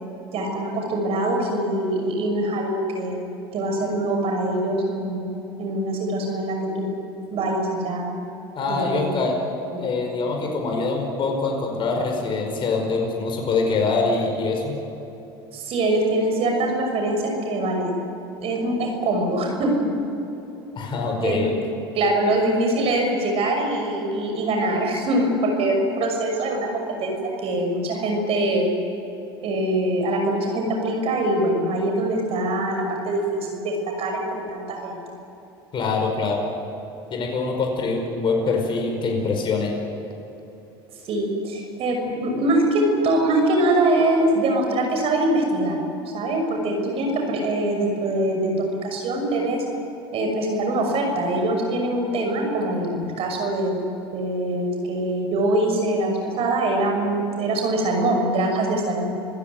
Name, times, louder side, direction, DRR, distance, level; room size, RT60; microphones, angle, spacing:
voice 1, 0.3-5.3 5.6-6.9 7.3-8.1 8.7-9.0 9.7-9.8 15.5-18.0 18.4-19.9 21.2-21.4 21.9-27.2 27.4-28.7 29.4-35.0 41.1-45.8 46.1-48.5 48.8-49.6 50.1-53.8 54.1-59.0, right 1 dB, 50° right, 2 dB, 6.3 m, -23 dB
voice 2, 8.6-9.4 9.8-14.8 20.7-21.5 35.7-36.5 37.1-39.7, left 3 dB, 40° left, 1 dB, 5.2 m, -24 dB
27.5 x 16.0 x 9.6 m, 2.9 s
hypercardioid pair, 85°, 13 cm